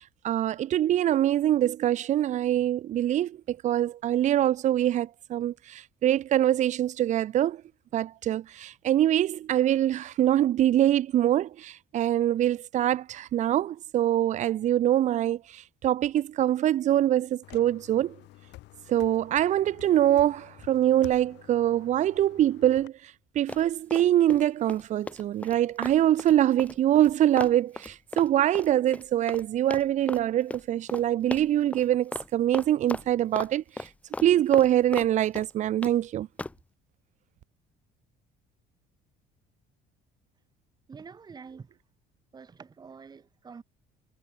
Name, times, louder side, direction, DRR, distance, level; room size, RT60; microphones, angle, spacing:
voice 1, 0.0-7.6 7.9-18.2 18.9-33.9 34.2-36.3, right 12 dB, 40° right, 0.7 m, -24 dB
sound 1, 17.4-22.9, left 17 dB, 70° left, 2.1 m, -50 dB
Run, 23.5-24.4 24.7-29.5 29.7-30.2 30.5-30.6 30.9-31.0 31.3-31.8 32.1-32.3 32.5-33.5 33.8-35.1 35.3-35.9 36.4-36.6, left 2 dB, 5° left, 0.6 m, -36 dB
voice 2, 40.9-41.7 42.3-43.6, right 5 dB, 20° right, 3.2 m, -46 dB
cardioid pair, 165°, 19 cm